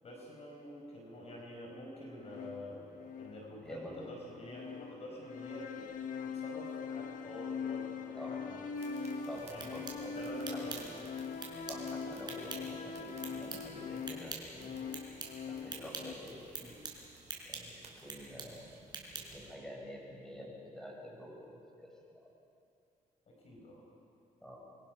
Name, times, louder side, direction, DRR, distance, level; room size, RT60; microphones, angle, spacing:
voice 1, 0.0-2.9 3.2-5.9 6.2-8.7 9.5-10.8 23.3-23.8, left 1 dB, 45° left, -1 dB, 5.0 m, -47 dB
sound 1, 2.2-16.1, left 5 dB, 70° left, 1.5 m, -42 dB
voice 2, 3.6-4.1 8.1-8.4 9.3-10.7 11.7-14.9 15.5-16.7 17.5-18.8 19.1-21.9 24.4-24.5, equal, 5° left, -3 dB, 7.7 m, -48 dB
sound 2, 8.7-18.8, right 5 dB, 55° right, 4.4 m, -60 dB
sound 3, 9.3-19.5, right 3 dB, 30° right, 4.6 m, -48 dB
27.0 x 24.0 x 6.0 m, 2.6 s
cardioid pair, 110°, 14 cm